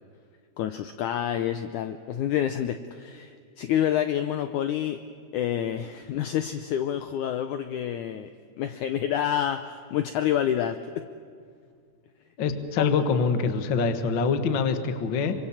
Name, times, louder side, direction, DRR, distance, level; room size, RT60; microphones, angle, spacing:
voice 1, 0.6-5.0 5.3-8.3 8.6-11.0 12.8-13.0, left 10 dB, 85° left, 9 dB, 1.8 m, -28 dB
voice 2, 12.4-15.3, left 5 dB, 60° left, 8 dB, 1.2 m, -25 dB
25.5 x 25.0 x 7.3 m, 2.2 s
omnidirectional pair, 4.4 m